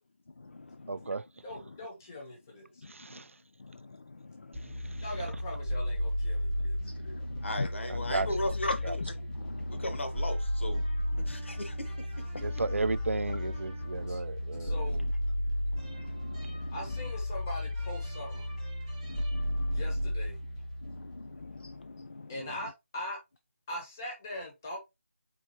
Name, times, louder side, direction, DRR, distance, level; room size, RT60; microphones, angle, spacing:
voice 1, 0.4-1.1 2.8-3.2 3.6-5.0 6.8-7.7 8.1-8.2 8.6-9.8 11.2-11.4 13.3-13.4 13.9-14.2 14.5-14.7 15.7-16.8 19.0-19.8 20.8-22.4, left 3 dB, 50° left, 0.3 m, -42 dB
voice 2, 0.9-1.2 2.9-3.2 7.9-8.3 8.8-8.9 12.4-14.7, right 3 dB, 75° right, 0.4 m, -33 dB
voice 3, 1.4-2.8 5.0-6.8 14.1-14.2 14.6-15.0 16.7-18.5 19.7-20.4 22.3-23.2 23.7-24.8, left 1 dB, 15° left, 0.9 m, -41 dB
sound 1, 4.5-21.8, left 1 dB, 15° right, 0.9 m, -34 dB
voice 4, 7.4-9.0 9.7-10.8 11.2-12.5, left 1 dB, 65° left, 1.2 m, -37 dB
4.3 x 3.0 x 2.8 m
figure-of-eight pair, 175°, 7 cm